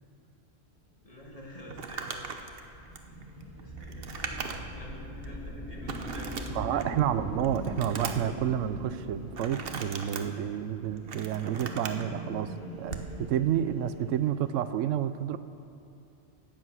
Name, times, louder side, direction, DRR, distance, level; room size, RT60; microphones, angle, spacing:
voice 1, 1.0-2.3 3.6-6.8, equal, 30° left, -2 dB, 1.9 m, -48 dB
sound 1, 1.2-14.6, equal, 5° right, 2.9 m, -42 dB
Crumpling crinkling, 1.7-4.8 5.2-5.3 5.9-7.0 7.4-8.4 9.3-10.2 10.8-12.1 12.8-13.1, right 5 dB, 55° right, 1.0 m, -39 dB
voice 2, 6.5-15.4, right 10 dB, 90° right, 13 dB, 0.9 m, -30 dB
16.5 x 7.5 x 6.1 m, 2.7 s
omnidirectional pair, 1.3 m